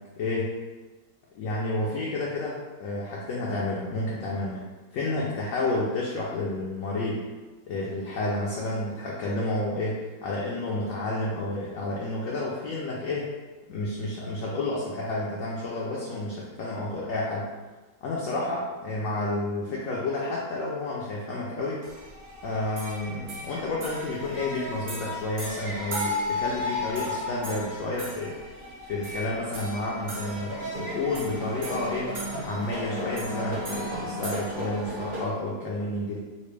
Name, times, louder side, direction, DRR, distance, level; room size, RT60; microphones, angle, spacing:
voice 1, 0.2-0.5 1.3-4.7 4.9-7.2 7.7-13.3 13.7-17.5 18.0-21.8 22.4-28.4 28.8-32.2 32.4-36.2, left 2 dB, 70° left, -5 dB, 0.9 m, -30 dB
sound 1, 21.8-35.2, left 1 dB, 40° right, 0.8 m, -34 dB
4.1 x 2.1 x 3.2 m, 1.2 s
omnidirectional pair, 1.8 m